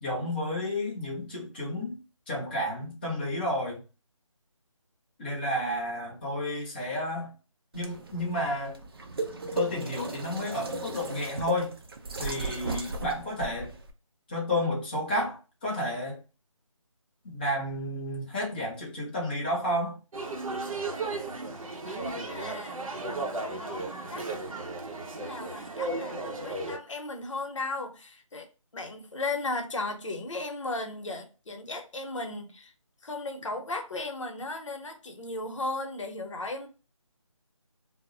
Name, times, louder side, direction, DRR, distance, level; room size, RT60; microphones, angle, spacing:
voice 1, 0.0-2.0 2.3-3.8 5.2-7.3 7.7-8.8 9.5-11.7 12.2-13.7 14.3-16.2 17.2-20.0, left 1 dB, 20° left, 0.6 m, -31 dB
sound 1, 7.7-13.9, right 3 dB, 45° right, 0.4 m, -36 dB
sound 2, 20.1-26.8, right 2 dB, 85° right, 0.6 m, -35 dB
voice 2, 21.8-22.8 23.1-24.2 25.2-28.5 28.7-32.7 33.0-36.7, left 2 dB, 65° left, 0.7 m, -36 dB
2.1 x 2.0 x 3.6 m
figure-of-eight pair, 165°, 17 cm